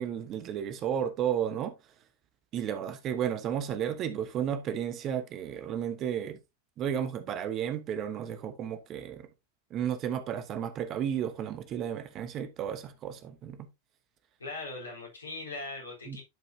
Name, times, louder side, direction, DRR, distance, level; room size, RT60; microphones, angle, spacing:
voice 1, 0.0-1.7 2.5-6.4 6.8-9.3 9.7-13.7 16.1-16.2, right 9 dB, 35° right, 1.1 m, -33 dB
voice 2, 14.4-16.2, left 2 dB, 75° left, 3.9 m, -40 dB
10.5 x 5.6 x 2.7 m
figure-of-eight pair, 90°, 0 cm